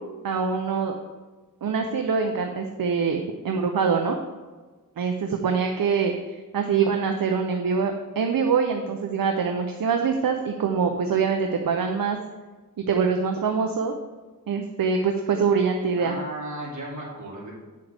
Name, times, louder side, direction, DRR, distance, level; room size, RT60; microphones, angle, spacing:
voice 1, 0.2-1.0 1.6-4.2 5.0-12.2 12.9-13.9 14.5-16.2, right 5 dB, 70° right, 4 dB, 0.7 m, -24 dB
voice 2, 16.0-17.5, right 1 dB, 55° right, -5 dB, 2.8 m, -35 dB
8.5 x 7.7 x 3.5 m, 1.3 s
wide cardioid pair, 100°, 36 cm